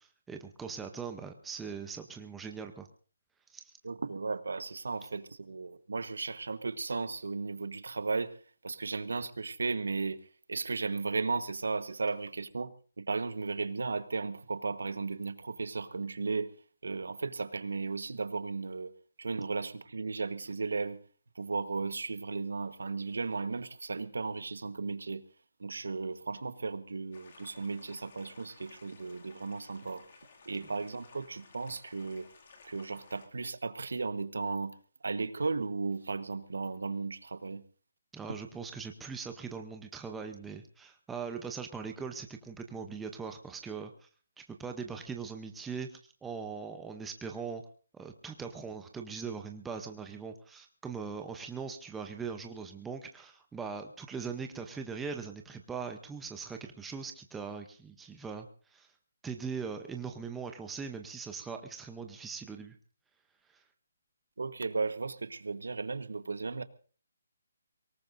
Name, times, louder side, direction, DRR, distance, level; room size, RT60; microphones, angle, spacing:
voice 1, 0.0-2.9 3.5-3.7 38.1-43.9 44.4-47.6 47.9-58.5 58.7-58.9 59.2-62.7, right 5 dB, 5° right, 5 dB, 0.7 m, -41 dB
voice 2, 3.8-8.3 8.6-10.2 10.5-16.5 16.8-18.9 19.2-21.0 21.4-25.2 25.6-30.0 30.4-32.3 32.6-34.7 35.0-37.6 38.3-38.4 64.4-66.6, right 4 dB, 80° right, 13 dB, 1.2 m, -35 dB
sound 1, 27.1-33.3, left 4 dB, 40° left, 2.2 m, -57 dB
24.0 x 18.5 x 2.6 m, 0.40 s
hypercardioid pair, 175°, 0 cm